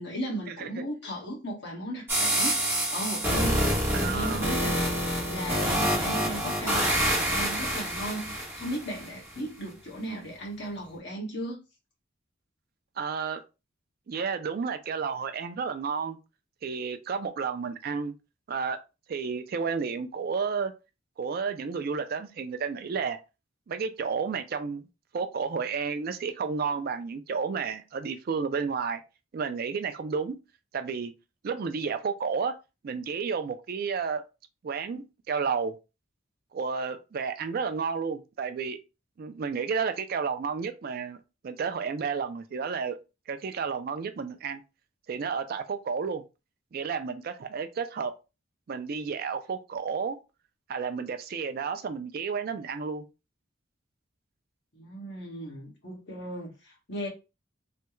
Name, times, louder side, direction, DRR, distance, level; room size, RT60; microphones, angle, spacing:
voice 1, 0.0-11.6 54.7-57.1, right 1 dB, 60° left, 1.4 m, -36 dB
sound 1, 2.1-9.1, right 1 dB, 10° right, 1.0 m, -27 dB
voice 2, 3.9-4.5 13.0-13.4 14.1-16.2 16.6-18.1 18.5-18.8 19.1-20.7 21.2-23.2 23.7-24.9 25.1-29.0 29.3-30.4 30.7-31.1 31.4-32.6 32.8-34.2 34.6-35.8 36.5-38.8 39.2-41.2 41.4-43.0 43.3-44.6 45.1-46.2 46.7-48.1 48.7-50.2 50.7-53.0, right 5 dB, 50° right, 0.3 m, -31 dB
3.2 x 2.2 x 3.0 m
head